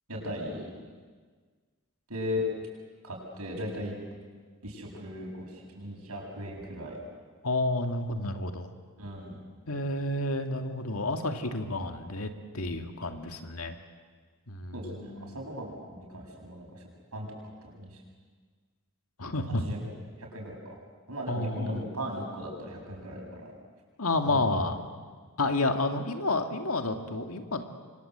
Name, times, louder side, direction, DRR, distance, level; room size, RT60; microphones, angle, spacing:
voice 1, 0.1-0.7 2.1-2.4 3.0-4.0 4.6-7.0 9.0-9.4 14.7-16.8 17.1-17.3 17.6-18.0 19.6-19.8 20.2-20.8 21.1-23.5 24.2-24.7, equal, 85° right, 0 dB, 7.4 m, -37 dB
voice 2, 7.4-8.7 9.7-13.8 14.5-15.4 19.2-19.6 21.3-21.8 24.0-24.8 25.4-27.6, left 2 dB, 70° left, 5 dB, 2.2 m, -30 dB
28.5 x 24.5 x 8.1 m, 1.5 s
head